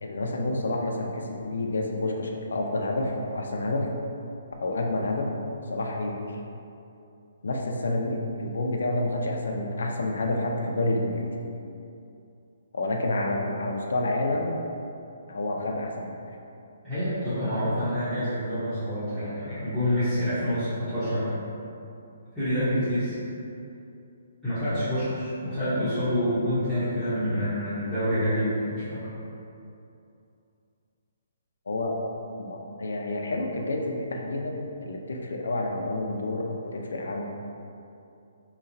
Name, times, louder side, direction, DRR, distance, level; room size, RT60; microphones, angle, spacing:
voice 1, 0.0-3.9 4.6-5.3 5.7-6.2 7.4-11.3 12.7-14.6 15.3-16.2 31.7-32.0 32.4-37.4, left 2 dB, 85° left, 1 dB, 0.5 m, -29 dB
voice 2, 16.8-21.3 22.3-23.2 24.4-29.1, equal, 5° right, -21 dB, 0.9 m, -27 dB
4.0 x 2.9 x 2.6 m, 2.7 s
hypercardioid pair, 170°, 0 cm